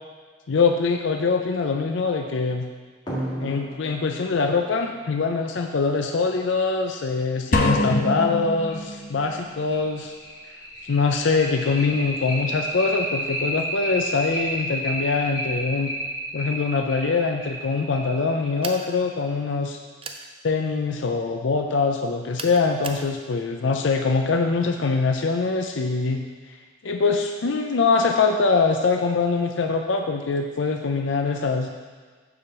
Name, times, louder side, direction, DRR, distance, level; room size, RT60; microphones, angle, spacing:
voice 1, 0.5-2.7 3.4-10.1 10.8-15.9 16.3-19.8 20.4-26.3 26.8-31.7, left 4 dB, 70° left, 4 dB, 0.5 m, -23 dB
sound 1, 3.1-6.2 7.7-7.8 8.2-8.3 8.7-8.8 9.2-19.3, right 1 dB, 25° left, 1.9 m, -32 dB
sound 2, 7.5-9.3, left 1 dB, 40° left, 0.8 m, -24 dB
sound 3, 18.6-18.9 20.0-20.3 22.4-23.1, right 5 dB, 25° right, 0.4 m, -35 dB
7.1 x 4.9 x 6.1 m, 1.5 s
head